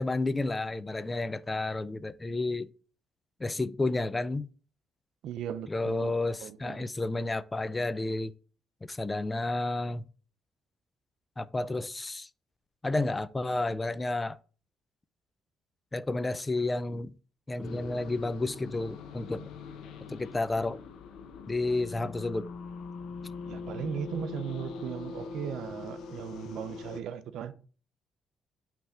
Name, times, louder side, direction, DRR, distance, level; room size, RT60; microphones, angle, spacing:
voice 1, 0.0-2.7 3.4-4.5 5.7-8.3 8.8-10.0 11.4-12.3 12.8-14.4 15.9-17.1 17.5-19.4 20.1-20.8 21.5-22.5, left 2 dB, 20° left, 0.4 m, -31 dB
voice 2, 5.2-6.1 6.4-6.9 19.3-19.5 23.5-27.5, right 8 dB, 80° right, 0.6 m, -37 dB
sound 1, 17.6-27.0, left 5 dB, 85° left, 0.7 m, -42 dB
6.1 x 3.4 x 5.7 m
cardioid pair, 90°, 0 cm